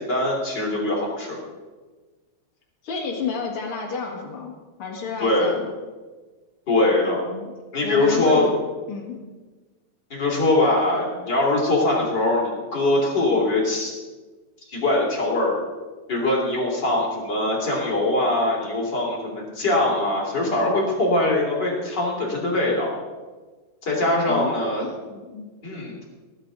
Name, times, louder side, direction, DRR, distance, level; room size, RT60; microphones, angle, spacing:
voice 1, 0.0-1.4 5.2-5.6 6.7-7.3 7.7-8.5 10.1-14.0 14.7-15.6 16.1-22.9 23.8-24.9 25.6-26.0, left 2 dB, 25° left, -3 dB, 2.9 m, -22 dB
voice 2, 2.8-5.7 7.0-7.5 7.8-8.5 8.9-9.2 24.3-25.5, left 5 dB, 75° left, -1 dB, 1.2 m, -31 dB
19.0 x 10.5 x 4.0 m, 1.3 s
omnidirectional pair, 5.5 m